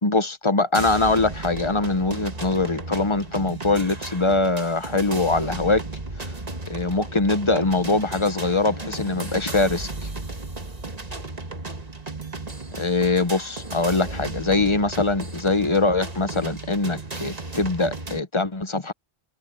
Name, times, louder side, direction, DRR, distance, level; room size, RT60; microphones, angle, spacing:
voice 1, 0.0-5.8 6.2-6.3 6.7-9.9 12.8-18.9, left 3 dB, 30° left, 0.9 m, -23 dB
sound 1, 0.7-18.2, right 3 dB, 40° right, 1.8 m, -34 dB
omnidirectional pair, 1.0 m